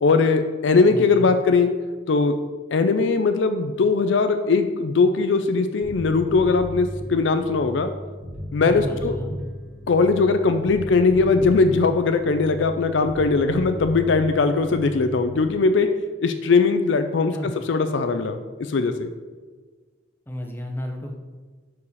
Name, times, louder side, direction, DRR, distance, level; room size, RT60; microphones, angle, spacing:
voice 1, 0.0-1.7 2.1-2.3 2.7-7.9 8.5-9.2 9.9-15.9 16.2-17.3 17.7-18.4 18.7-19.1, left 4 dB, 65° left, 8 dB, 0.4 m, -20 dB
voice 2, 0.9-1.3 8.6-9.4 17.3-17.5 20.3-21.1, equal, 10° left, 2 dB, 0.7 m, -32 dB
Bass guitar, 5.8-15.4, equal, 10° right, 1.9 m, -36 dB
4.8 x 4.7 x 5.5 m, 1.4 s
head